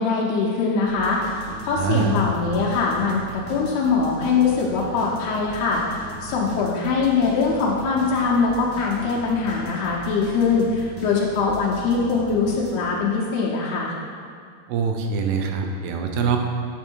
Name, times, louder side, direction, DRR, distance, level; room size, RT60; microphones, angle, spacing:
voice 1, 0.0-13.9, left 4 dB, 80° left, -3 dB, 3.0 m, -22 dB
sound 1, 0.8-13.0, right 2 dB, 40° right, 0.8 m, -39 dB
voice 2, 1.8-2.2 14.7-16.4, right 6 dB, 80° right, 4 dB, 2.8 m, -24 dB
8.7 x 7.5 x 4.6 m, 2.2 s
omnidirectional pair, 4.6 m